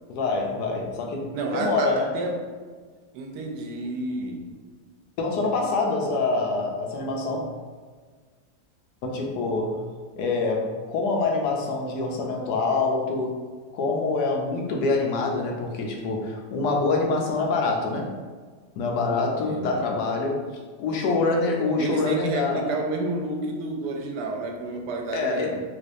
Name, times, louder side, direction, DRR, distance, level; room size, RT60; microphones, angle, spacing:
voice 1, 0.1-2.1 5.2-7.5 9.0-9.8 10.2-13.4 13.7-18.1 18.8-20.4 20.8-22.7 25.1-25.6, left 3 dB, 85° left, 0 dB, 1.2 m, -25 dB
voice 2, 1.3-2.3 3.1-4.5 19.2-19.9 21.8-25.6, right 2 dB, 80° right, 2 dB, 1.1 m, -30 dB
3.4 x 3.0 x 2.5 m, 1.5 s
omnidirectional pair, 1.7 m